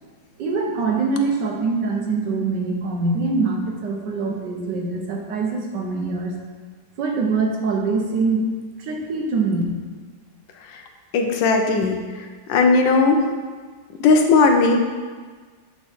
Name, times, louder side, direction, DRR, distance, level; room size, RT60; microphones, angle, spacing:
voice 1, 0.4-6.3 7.0-8.5 8.8-9.6, right 3 dB, 75° right, 1 dB, 1.5 m, -23 dB
voice 2, 11.1-12.0 12.5-13.2 14.0-14.8, left 4 dB, 85° left, 4 dB, 1.4 m, -16 dB
8.2 x 3.6 x 4.2 m, 1.5 s
omnidirectional pair, 2.0 m